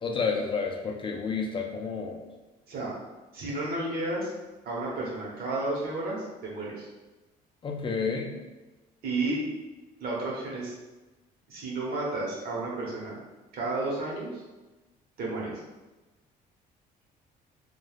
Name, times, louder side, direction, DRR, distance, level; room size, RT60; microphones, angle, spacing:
voice 1, 0.0-2.2 7.6-8.4, left 5 dB, 30° left, 1 dB, 0.3 m, -30 dB
voice 2, 3.3-4.3 4.6-6.9 9.0-9.4 10.0-10.7 11.5-13.2 13.5-14.4 15.2-15.6, right 2 dB, 65° right, -4 dB, 1.0 m, -32 dB
3.1 x 2.3 x 2.4 m, 1.1 s
cardioid pair, 110°, 17 cm